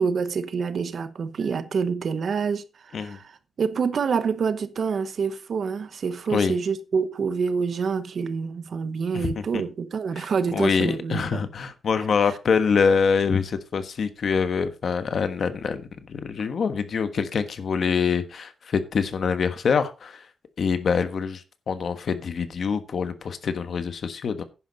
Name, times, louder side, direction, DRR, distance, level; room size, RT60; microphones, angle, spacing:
voice 1, 0.0-3.3 3.6-11.4, right 5 dB, 50° right, 1.0 m, -27 dB
voice 2, 9.1-9.6 10.2-15.8 16.1-20.3 20.6-24.4, left 6 dB, 50° left, 1.3 m, -25 dB
10.5 x 10.5 x 4.0 m
wide cardioid pair, 180°, 0 cm